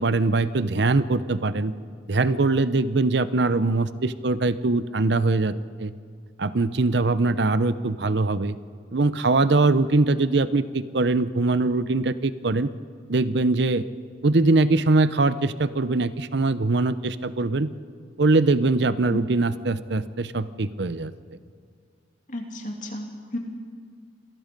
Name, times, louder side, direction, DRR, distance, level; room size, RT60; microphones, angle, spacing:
voice 1, 0.0-1.7 2.1-5.5 5.8-5.9 6.4-8.6 8.9-12.7 13.1-13.9 14.2-17.7 18.2-21.1, right 3 dB, 65° right, 14 dB, 0.7 m, -22 dB
voice 2, 22.3-23.4, left 1 dB, 45° left, 2 dB, 2.6 m, -33 dB
26.5 x 18.5 x 5.3 m, 2.2 s
head